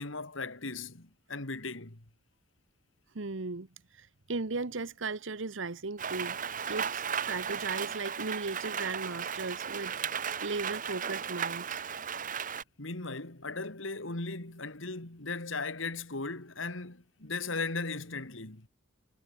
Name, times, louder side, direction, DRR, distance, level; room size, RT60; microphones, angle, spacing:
voice 1, 0.0-2.0 12.8-18.7, left 3 dB, 75° left, 2.6 m, -37 dB
voice 2, 3.1-3.7 3.9-6.4 6.7-10.0 10.4-11.8, right 3 dB, 70° right, 1.1 m, -36 dB
Rain, 6.0-12.6, right 7 dB, 40° right, 1.2 m, -35 dB
head